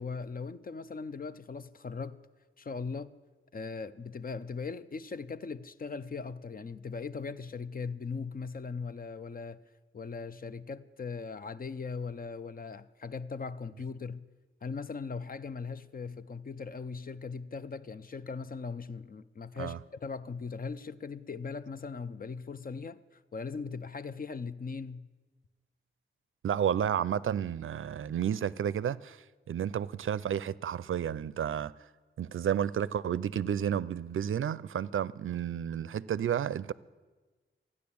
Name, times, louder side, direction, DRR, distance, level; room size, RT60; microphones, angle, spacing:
voice 1, 0.0-2.2 2.6-3.1 3.5-9.6 9.9-14.3 14.6-25.1, left 5 dB, 45° left, 0.5 m, -39 dB
voice 2, 26.4-31.7 32.2-36.7, right 9 dB, 80° right, 0.4 m, -31 dB
14.0 x 9.8 x 8.6 m
wide cardioid pair, 110°, 21 cm